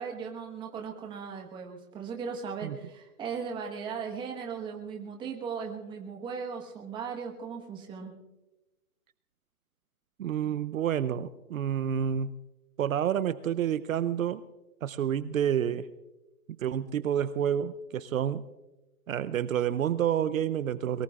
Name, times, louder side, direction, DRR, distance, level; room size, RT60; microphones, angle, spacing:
voice 1, 0.0-8.1, right 6 dB, 10° right, 2 dB, 1.3 m, -38 dB
voice 2, 10.2-12.3 12.8-14.4 14.8-15.9 16.6-18.5 19.1-21.0, right 9 dB, 65° right, 15 dB, 0.7 m, -29 dB
22.0 x 22.0 x 2.4 m, 1.0 s
hypercardioid pair, 155°, 45 cm